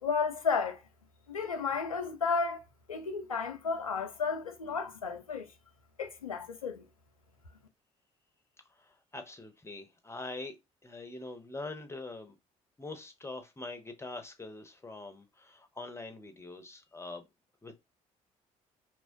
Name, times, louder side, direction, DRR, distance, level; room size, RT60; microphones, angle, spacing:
voice 1, 0.0-0.8 1.3-5.5 6.0-6.8, left 5 dB, 85° left, 0.4 m, -33 dB
voice 2, 9.1-10.6 10.8-12.4 12.8-17.2 17.6-17.8, left 2 dB, 15° left, 0.7 m, -43 dB
2.9 x 2.2 x 2.6 m
figure-of-eight pair, 50°, 17 cm